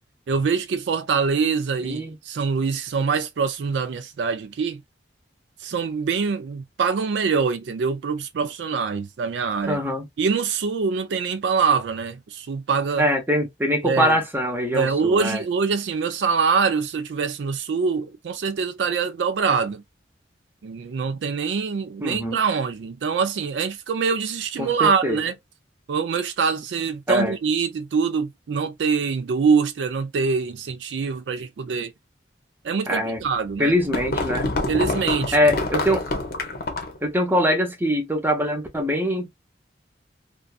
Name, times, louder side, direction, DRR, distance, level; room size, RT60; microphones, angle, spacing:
voice 1, 0.3-4.8 5.6-9.8 10.2-13.1 13.8-14.2 14.7-19.8 20.6-25.3 25.9-31.9 32.6-33.7 34.7-35.4, right 5 dB, 70° right, 0.4 m, -24 dB
voice 2, 1.8-2.2 9.6-10.1 13.0-15.4 22.0-22.4 24.6-25.2 27.1-27.3 32.9-33.2 33.6-34.5 35.3-36.0 37.0-39.3, equal, 10° right, 0.7 m, -23 dB
sound 1, 33.3-37.0, left 2 dB, 55° left, 0.7 m, -27 dB
2.5 x 2.2 x 2.4 m
head